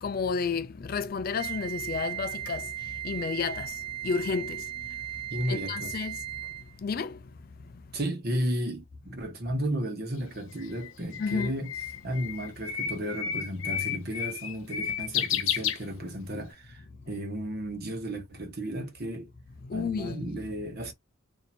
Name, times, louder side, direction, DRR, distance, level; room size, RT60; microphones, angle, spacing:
voice 1, 0.0-2.7 3.0-3.8 4.0-4.6 5.5-6.2 6.8-7.2 11.2-11.5 19.7-20.4, left 5 dB, 45° left, 0.4 m, -31 dB
Wind instrument woodwind instrument, 1.4-6.7, right 13 dB, 25° right, 0.4 m, -37 dB
voice 2, 5.3-5.9 7.9-11.7 12.0-19.3 19.7-20.9, equal, 45° right, 1.1 m, -34 dB
Bird, 10.2-16.4, left 8 dB, 70° left, 0.8 m, -32 dB
2.8 x 2.6 x 4.1 m
head